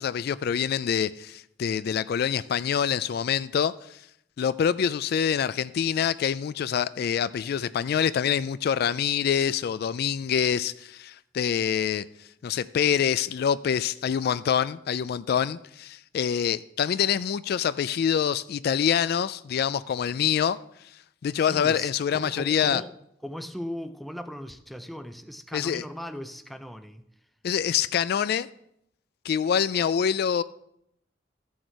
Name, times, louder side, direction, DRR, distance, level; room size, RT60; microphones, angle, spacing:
voice 1, 0.0-4.0 4.4-12.0 12.4-20.6 21.2-22.8 25.5-25.8 27.4-28.5 29.2-30.4, left 8 dB, 60° left, 0.3 m, -26 dB
voice 2, 21.4-22.9 23.2-27.0, equal, ahead, 0.5 m, -38 dB
13.5 x 6.4 x 4.6 m
head